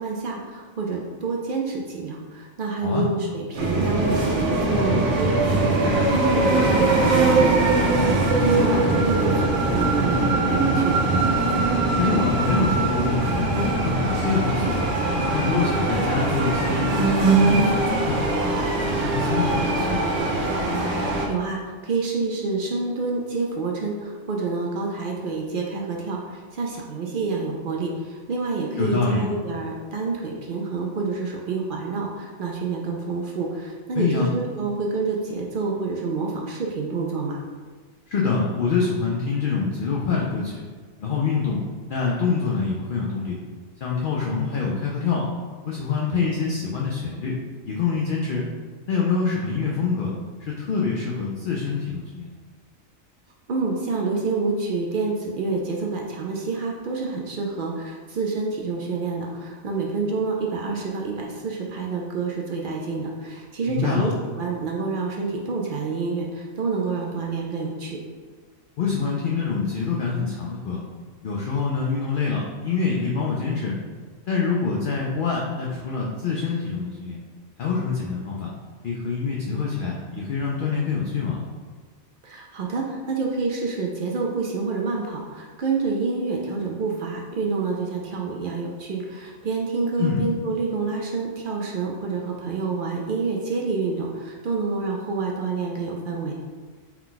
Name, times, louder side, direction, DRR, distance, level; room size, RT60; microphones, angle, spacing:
voice 1, 0.0-11.0 21.0-37.4 53.5-68.0 82.2-96.3, right 4 dB, 65° right, -1 dB, 0.5 m, -28 dB
sound 1, 3.5-21.3, right 2 dB, 85° right, 1.2 m, -21 dB
voice 2, 12.0-14.9 15.3-18.4 18.8-20.1 28.8-29.3 34.0-34.3 38.1-40.6 41.0-41.6 41.9-43.4 43.8-45.3 45.6-47.4 47.7-48.5 48.9-50.1 50.4-52.3 63.7-64.1 68.8-70.8 71.2-73.7 74.3-77.2 77.6-78.5 78.8-81.4 90.0-90.2, left 5 dB, 60° left, -3 dB, 0.5 m, -25 dB
4.5 x 2.2 x 3.8 m, 1.5 s
omnidirectional pair, 1.4 m